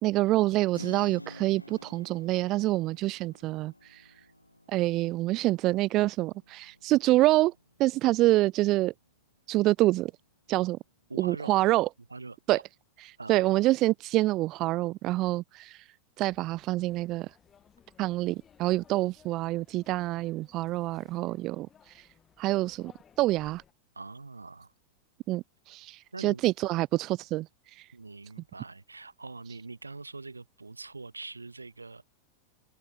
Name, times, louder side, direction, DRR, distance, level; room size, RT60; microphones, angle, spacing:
voice 1, 0.0-4.1 4.7-7.5 7.8-8.9 9.5-10.1 10.5-10.8 11.2-11.9 12.5-12.6 13.0-15.9 16.2-17.3 18.0-22.1 22.4-22.9 23.2-23.6 25.3-27.9, right 17 dB, 35° right, 0.4 m, -27 dB
Keyboard (musical), 0.7-9.3, left 1 dB, 85° left, 1.8 m, -50 dB
voice 2, 11.1-11.5 12.1-12.4 13.2-13.4 23.9-24.7 26.1-26.4 27.9-32.0, right 3 dB, 80° right, 2.7 m, -43 dB
sound 1, 16.2-23.7, left 8 dB, 25° left, 7.1 m, -61 dB
figure-of-eight pair, 90°, 0 cm